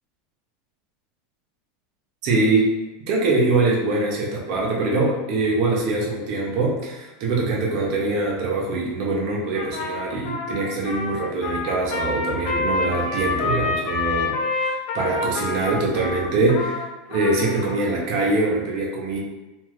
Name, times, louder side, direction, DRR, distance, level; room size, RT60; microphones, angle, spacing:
voice 1, 2.2-2.6 3.1-19.2, right 3 dB, 45° right, -1 dB, 0.7 m, -23 dB
Trumpet, 9.5-17.8, left 3 dB, 50° left, 0.5 m, -27 dB
2.6 x 2.3 x 3.2 m, 1.0 s
supercardioid pair, 165°, 0 cm